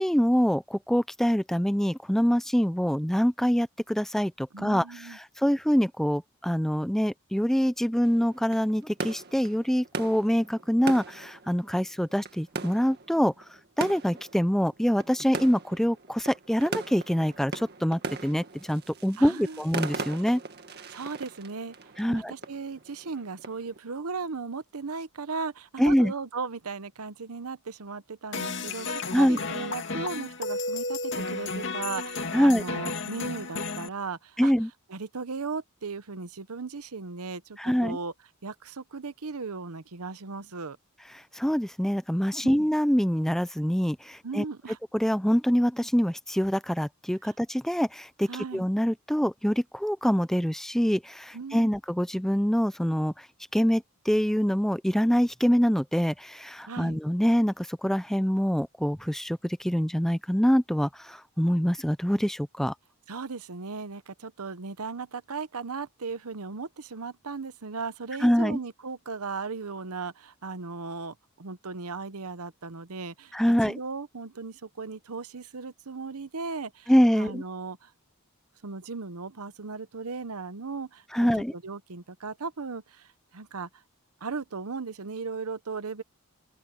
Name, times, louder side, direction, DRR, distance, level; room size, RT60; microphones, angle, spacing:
voice 1, 0.0-13.3 13.8-20.4 22.0-22.3 25.8-26.1 29.1-29.4 32.3-32.6 34.4-34.7 37.6-38.0 41.1-44.4 44.9-53.3 53.5-62.7 68.2-68.6 73.3-73.8 76.9-77.4 81.1-81.5, equal, ahead, 0.4 m, -25 dB
voice 2, 4.5-5.2 19.2-19.6 20.9-21.7 22.1-34.5 34.9-38.1 38.4-40.8 42.4-42.7 44.2-44.8 47.2-47.3 48.3-48.6 51.3-51.7 56.7-57.0 63.1-77.9 78.6-83.8 84.2-86.0, right 4 dB, 80° right, 0.9 m, -37 dB
sound 1, 8.0-23.8, right 3 dB, 45° right, 1.9 m, -39 dB
sound 2, 28.3-33.9, left 3 dB, 55° left, 2.1 m, -33 dB
open air
head